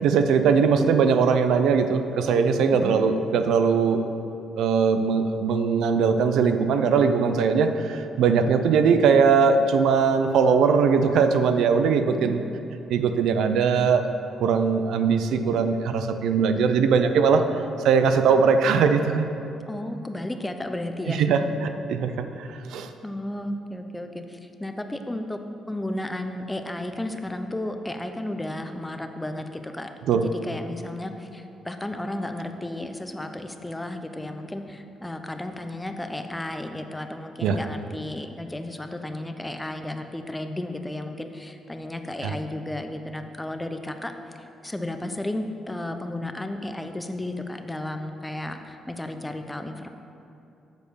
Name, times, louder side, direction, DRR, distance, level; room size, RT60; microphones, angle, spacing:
voice 1, 0.0-4.0 4.6-12.4 12.9-14.1 14.4-17.4 17.8-19.3 21.1-22.1 22.4-22.9 30.1-30.2 37.4-37.6 42.2-42.3, right 6 dB, 80° right, 8 dB, 0.5 m, -20 dB
voice 2, 19.7-21.3 23.0-25.4 25.7-44.1 44.4-49.9, left 1 dB, 10° left, 7 dB, 0.6 m, -33 dB
8.1 x 4.4 x 6.7 m, 2.8 s
cardioid pair, 90°, 0 cm